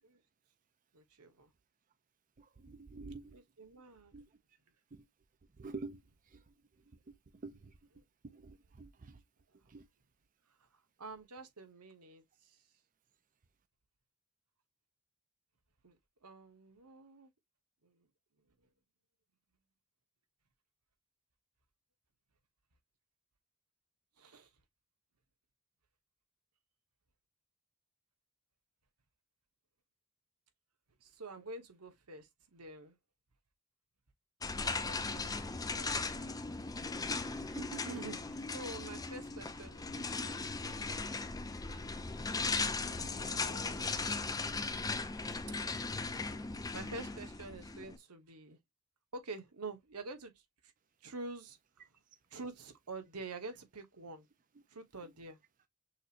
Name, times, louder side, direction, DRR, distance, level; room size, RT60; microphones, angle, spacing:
voice 1, 0.9-1.5 3.3-4.1 11.0-12.6 15.8-17.3 17.8-18.1 24.2-24.5 31.0-33.0 34.5-36.1 37.5-40.6 42.2-43.9 46.7-48.6 49.1-50.7 51.0-51.8 52.3-54.3 54.7-55.4, right 3 dB, 85° right, 1.2 m, -48 dB
voice 2, 2.4-3.4 4.1-4.3 4.9-5.1 5.6-6.5 6.9-9.2 9.7-9.9, right 3 dB, 35° right, 0.5 m, -49 dB
sound 1, 34.4-48.0, left 3 dB, 15° left, 0.5 m, -38 dB
6.3 x 3.1 x 2.5 m
head